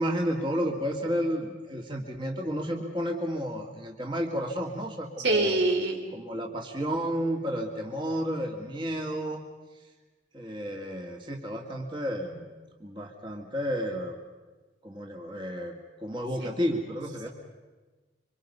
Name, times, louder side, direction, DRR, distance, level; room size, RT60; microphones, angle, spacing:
voice 1, 0.0-5.5 6.1-9.5 10.3-12.5 12.8-14.2 14.8-17.3, equal, 25° right, 1 dB, 2.1 m, -31 dB
voice 2, 5.2-6.0 16.4-16.5, right 2 dB, 80° right, 2 dB, 3.8 m, -24 dB
27.0 x 25.0 x 5.6 m, 1.3 s
head